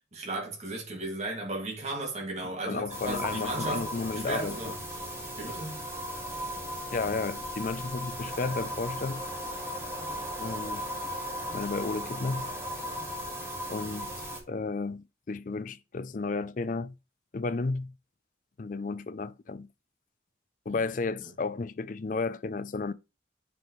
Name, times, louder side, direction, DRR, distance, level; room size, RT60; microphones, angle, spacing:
voice 1, 0.1-4.8 5.4-5.8 20.7-20.8, right 2 dB, 40° right, 2.0 m, -35 dB
voice 2, 2.7-4.7 6.9-9.2 10.4-10.8 11.5-12.5 13.7-16.9 17.3-17.9 18.6-19.7 20.7-22.9, left 3 dB, 50° left, 0.5 m, -33 dB
sound 1, 2.9-14.4, equal, 15° right, 1.8 m, -36 dB
7.1 x 6.0 x 3.1 m
head